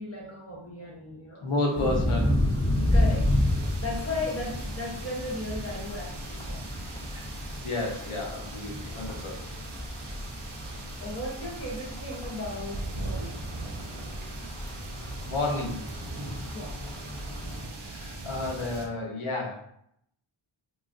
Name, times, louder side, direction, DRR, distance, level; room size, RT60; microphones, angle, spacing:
voice 1, 0.0-1.5 2.9-3.4 3.8-6.7 11.0-13.4 16.5-16.8, left 2 dB, 30° left, -2 dB, 0.8 m, -36 dB
voice 2, 1.4-3.0 7.1-7.3 7.6-9.5 15.2-15.8 17.8-19.6, left 2 dB, 80° left, -1 dB, 0.8 m, -31 dB
sound 1, 1.8-17.6, left 1 dB, 10° left, 0.3 m, -31 dB
sound 2, 1.8-18.9, right 2 dB, 60° right, 0.6 m, -41 dB
3.0 x 2.3 x 2.5 m, 0.72 s
wide cardioid pair, 65°, 49 cm